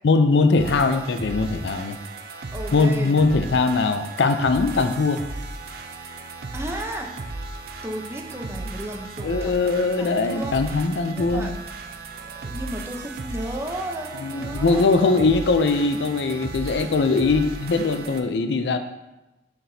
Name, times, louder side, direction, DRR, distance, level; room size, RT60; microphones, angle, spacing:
voice 1, 0.0-2.0 2.7-5.2 9.2-11.5 14.2-18.8, left 3 dB, 80° left, 9 dB, 0.5 m, -21 dB
sound 1, 0.6-18.2, right 2 dB, 60° right, 0.5 m, -36 dB
voice 2, 2.5-3.1 6.0-6.2 6.5-7.1 7.8-11.5 12.3-15.2 17.2-17.3, right 1 dB, 15° right, 1 dB, 0.7 m, -34 dB
6.6 x 5.9 x 2.7 m, 1.0 s
head